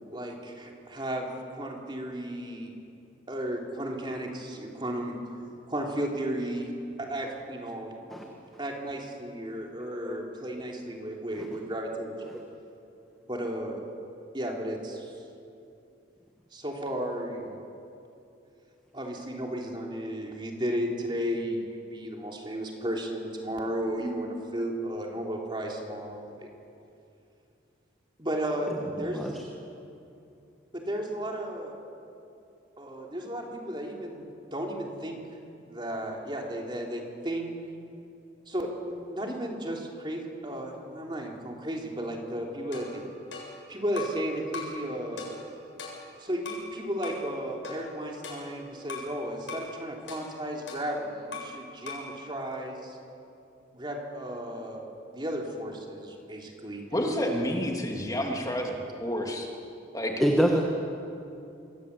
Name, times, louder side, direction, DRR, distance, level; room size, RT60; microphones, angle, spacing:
voice 1, 0.1-2.7 3.3-5.2 5.7-6.7 7.0-7.9 8.6-12.1 13.3-13.8 14.3-15.1 16.5-17.6 18.9-26.5 28.2-29.3 30.7-31.7 32.8-35.2 35.7-37.5 38.5-43.0 43.7-45.3 46.2-53.0 53.7-56.8, right 1 dB, 25° right, 0 dB, 3.6 m, -34 dB
voice 2, 9.8-10.2 11.4-11.5 12.3-12.4 29.0-29.3 60.2-60.6, equal, ahead, 0 dB, 1.9 m, -26 dB
sound 1, 42.7-44.2 44.5-44.8 45.2-46.7 47.0-47.3 47.6-49.1 49.5-49.7 50.1-51.6 51.9-52.1, left 4 dB, 75° left, 7.6 m, -41 dB
voice 3, 56.9-59.5 59.9-60.1, equal, 20° left, 0 dB, 3.0 m, -29 dB
27.5 x 23.0 x 8.6 m, 2.7 s
head